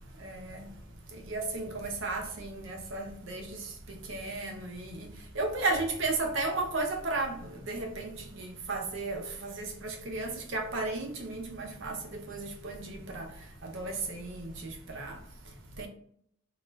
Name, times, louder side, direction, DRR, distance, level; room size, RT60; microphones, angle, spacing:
voice 1, 0.2-0.6 1.3-3.5 3.9-4.9 5.4-8.1 8.4-12.0 12.3-13.2 13.6-15.1 15.8-15.9, right 3 dB, 65° right, 0.5 m, -34 dB
2.3 x 2.2 x 3.0 m
head